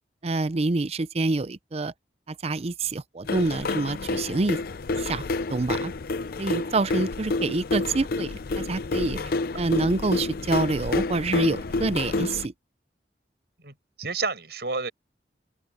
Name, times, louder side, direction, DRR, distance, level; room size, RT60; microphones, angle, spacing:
voice 1, 0.2-1.9 2.4-4.6 5.0-5.2 5.5-5.9 6.4-9.2 9.6-12.5, right 3 dB, 35° right, 0.5 m, -26 dB
sound 1, 3.3-12.5, left 3 dB, 55° left, 0.5 m, -29 dB
voice 2, 13.6-14.9, right 4 dB, 65° right, 7.4 m, -30 dB
open air
head